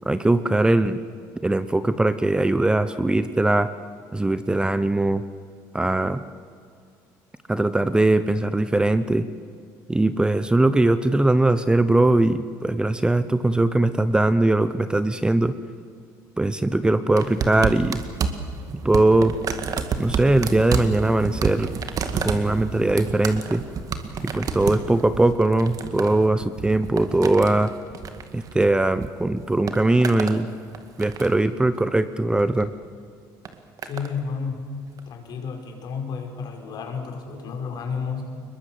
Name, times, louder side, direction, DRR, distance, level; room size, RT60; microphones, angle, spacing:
voice 1, 0.0-1.0 1.4-3.7 4.1-5.2 5.7-6.2 7.5-9.3 9.9-15.5 16.4-18.0 18.8-19.3 20.0-21.7 22.2-23.6 24.2-27.7 28.3-30.5 31.0-32.7, right 2 dB, 10° right, 12 dB, 0.9 m, -20 dB
sound 1, 17.2-29.1 29.4-30.4 30.7-31.5 32.4-32.7 33.4-34.1 35.0-35.1, right 6 dB, 50° right, 2.1 m, -30 dB
voice 2, 33.8-34.8 35.1-38.3, left 5 dB, 60° left, 3 dB, 5.0 m, -31 dB
22.5 x 21.5 x 7.7 m, 2.3 s
cardioid pair, 100°, 8 cm